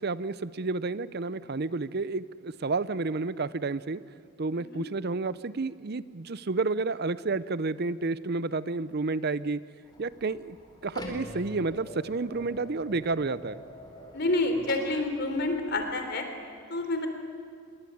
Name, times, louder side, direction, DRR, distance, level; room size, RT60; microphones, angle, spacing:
voice 1, 0.0-4.0 4.4-9.6 10.0-10.6 10.8-13.6, right 3 dB, 50° right, 17 dB, 0.6 m, -30 dB
sound 1, 9.8-15.8, left 1 dB, 20° left, 4.1 m, -45 dB
voice 2, 14.1-16.3 16.7-17.1, left 2 dB, 50° left, 6 dB, 3.6 m, -28 dB
25.5 x 22.5 x 9.4 m, 2.2 s
head